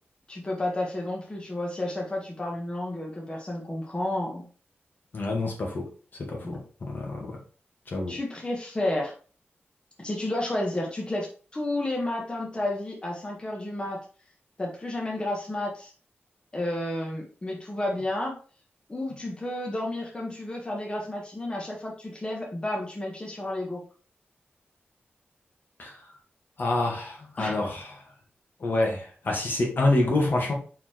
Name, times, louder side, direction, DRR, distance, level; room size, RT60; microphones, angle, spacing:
voice 1, 0.3-4.5 6.4-6.6 8.1-9.1 10.0-11.3 11.5-14.0 14.6-15.9 16.5-18.4 18.9-23.8 27.4-27.7, left 1 dB, 25° left, 1.5 m, -31 dB
voice 2, 5.1-5.9 6.2-7.4 7.9-8.2 25.8-26.0 26.6-27.9 28.6-30.5, left 2 dB, 55° left, 2.0 m, -27 dB
5.8 x 4.7 x 4.5 m
wide cardioid pair, 125°, 4 cm